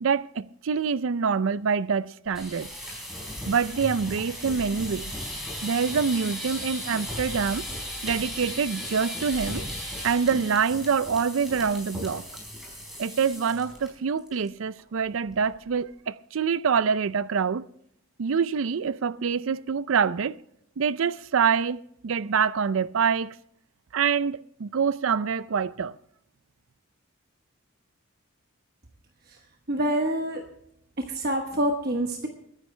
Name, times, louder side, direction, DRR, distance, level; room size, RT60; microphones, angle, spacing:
voice 1, 0.0-2.7 3.5-5.1 5.6-7.6 8.0-9.6 10.0-12.2 13.0-17.7 18.2-20.4 20.8-23.3 23.9-25.9, right 6 dB, 75° right, 0.5 m, -25 dB
sound 1, 2.3-13.9 14.2-14.5 14.8-14.9 15.3-15.7, equal, ahead, 4.4 m, -36 dB
voice 2, 29.7-30.4 31.1-32.3, right 1 dB, 50° right, 1.1 m, -26 dB
22.5 x 10.0 x 3.3 m
head